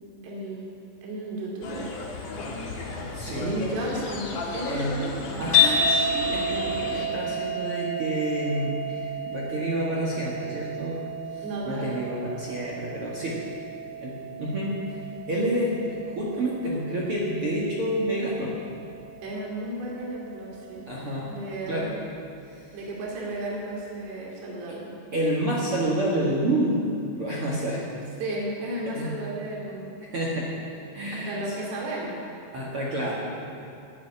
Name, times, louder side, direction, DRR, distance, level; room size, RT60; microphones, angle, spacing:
voice 1, 0.2-0.6 1.0-1.9 3.3-5.5 11.4-12.0 19.2-20.9 21.3-21.9 22.7-24.9 28.2-30.0 31.1-32.1, right 1 dB, 70° right, -3 dB, 4.6 m, -34 dB
sound 1, 1.6-7.1, left 3 dB, 55° left, 2.4 m, -35 dB
voice 2, 3.0-3.7 4.7-5.0 5.4-11.0 11.3-13.4 14.0-18.6 20.9-21.3 21.7-21.9 22.5-22.8 25.1-26.8 27.2-27.9 28.9-29.1 30.1-30.5 30.9-31.5 32.5-33.4, right 1 dB, 45° right, -5 dB, 2.0 m, -29 dB
sound 2, 5.5-21.8, left 2 dB, 25° left, 3.6 m, -31 dB
15.5 x 7.5 x 9.8 m, 2.5 s
omnidirectional pair, 5.0 m